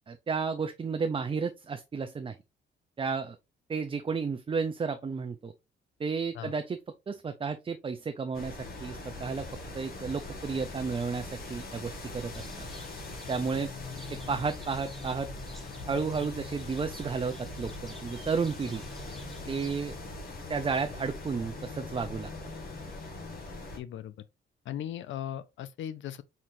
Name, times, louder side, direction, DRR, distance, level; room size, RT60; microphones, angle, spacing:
voice 1, 0.1-2.4 3.0-3.4 3.7-5.5 6.0-6.8 7.1-9.5 9.7-12.7 13.3-13.7 14.1-15.3 15.9-18.8 19.5-20.0 20.5-22.3, right 5 dB, 25° right, 0.5 m, -32 dB
sound 1, 8.3-23.8, left 2 dB, 50° left, 1.8 m, -41 dB
sound 2, 12.3-20.0, equal, ahead, 1.1 m, -54 dB
voice 2, 23.8-24.2 24.7-26.2, left 10 dB, 70° left, 0.6 m, -38 dB
4.6 x 4.2 x 2.6 m
cardioid pair, 90°, 20 cm